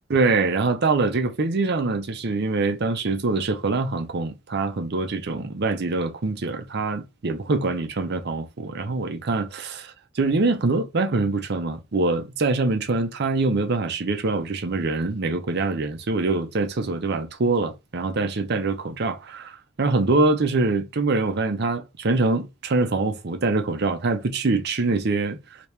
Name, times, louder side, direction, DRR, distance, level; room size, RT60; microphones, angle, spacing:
voice 1, 0.1-25.4, right 3 dB, 50° right, 0.6 m, -24 dB
2.9 x 2.8 x 3.3 m
head